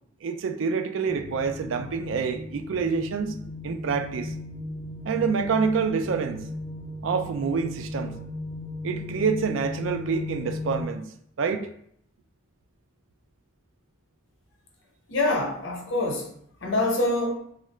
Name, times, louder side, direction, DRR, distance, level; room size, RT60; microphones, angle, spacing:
voice 1, 0.2-3.4 3.6-4.3 5.1-6.5 7.0-8.1 8.8-11.1 11.4-11.7, right 5 dB, 75° right, 0.4 m, -27 dB
sound 1, 1.1-10.8, left 2 dB, 25° left, 0.4 m, -36 dB
voice 2, 15.1-17.3, left 2 dB, 75° left, 0.8 m, -26 dB
3.6 x 2.4 x 3.2 m
head